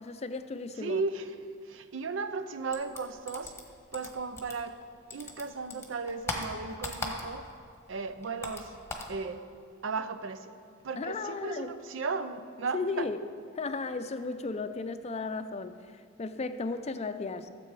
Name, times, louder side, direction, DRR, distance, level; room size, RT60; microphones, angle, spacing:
voice 1, 0.0-1.0 11.0-11.7 12.7-13.2 13.5-17.5, left 3 dB, 35° left, 10 dB, 0.4 m, -35 dB
voice 2, 0.8-1.4 1.6-3.5 3.9-4.8 5.1-7.5 7.9-8.8 9.1-9.5 9.8-10.5 10.8-13.1, right 4 dB, 85° right, 11 dB, 0.6 m, -35 dB
sound 1, 2.7-4.8 5.1-7.6 7.9-9.2, left 2 dB, 15° left, 1.2 m, -38 dB
13.5 x 7.5 x 4.8 m, 2.2 s
head